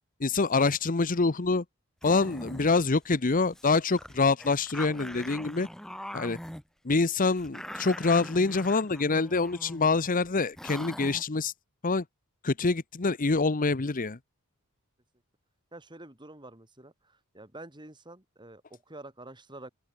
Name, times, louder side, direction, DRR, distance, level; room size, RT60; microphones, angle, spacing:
voice 1, 0.2-1.6 2.0-5.7 6.1-6.4 6.8-11.5 11.8-12.0 12.4-14.2, left 3 dB, 40° left, 0.9 m, -26 dB
sound 1, 2.0-2.8 3.1-3.2 3.5-3.7 4.0-6.6 7.3-9.9 10.2-10.3 10.6-11.2, equal, ahead, 1.3 m, -42 dB
voice 2, 15.7-19.7, right 2 dB, 20° right, 3.6 m, -47 dB
open air
head